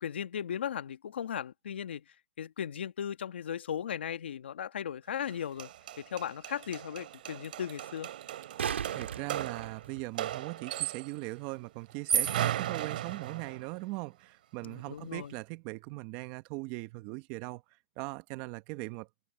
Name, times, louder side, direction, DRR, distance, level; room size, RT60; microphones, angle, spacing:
voice 1, 0.0-2.0 2.4-5.7 6.0-8.1 14.6-15.3, left 9 dB, 70° left, 1.3 m, -37 dB
sound 1, 5.3-5.4 5.6-11.2 11.9-13.7, right 10 dB, 55° right, 2.6 m, -35 dB
sound 2, 5.4-5.5 8.2-10.4 13.2-13.3, right 8 dB, 80° right, 2.9 m, -37 dB
voice 2, 8.9-17.6 18.0-19.1, right 22 dB, 30° right, 1.0 m, -40 dB
hypercardioid pair, 160°, 6 cm